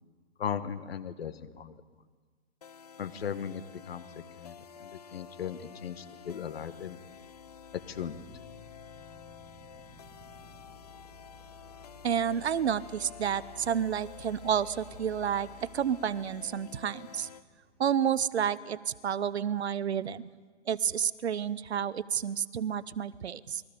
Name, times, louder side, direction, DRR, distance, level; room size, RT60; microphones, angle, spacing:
voice 1, 0.4-1.8 3.0-4.0 4.4-7.0 7.9-8.2, left 8 dB, 55° left, 12 dB, 1.5 m, -37 dB
sound 1, 2.6-17.4, left 7 dB, 35° left, 0.5 m, -51 dB
sound 2, 7.0-19.0, left 4 dB, 10° left, 5.2 m, -54 dB
voice 2, 12.0-17.3 17.8-20.3 20.7-23.6, right 8 dB, 60° right, 18 dB, 0.9 m, -30 dB
28.0 x 21.5 x 5.3 m, 1.5 s
hypercardioid pair, 155°, 36 cm